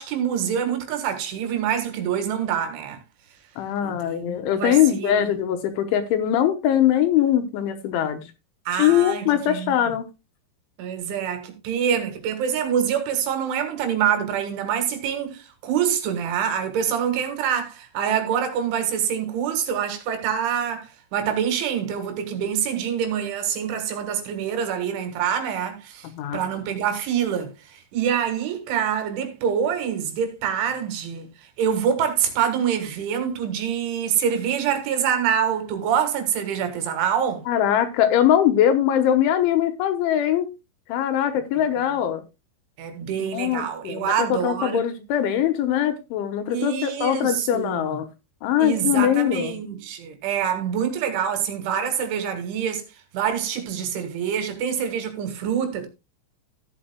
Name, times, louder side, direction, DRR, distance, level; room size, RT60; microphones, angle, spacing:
voice 1, 0.0-3.0 3.8-5.3 8.7-9.9 10.8-31.3 31.6-37.5 42.8-44.8 46.5-48.0 48.6-52.9 53.1-55.9, right 8 dB, 70° right, 3.9 m, -26 dB
voice 2, 3.6-8.2 8.7-10.0 26.0-26.4 37.5-40.5 40.9-42.2 43.3-48.1 48.4-49.6, left 10 dB, 75° left, 3.3 m, -22 dB
15.0 x 9.0 x 2.2 m
omnidirectional pair, 5.8 m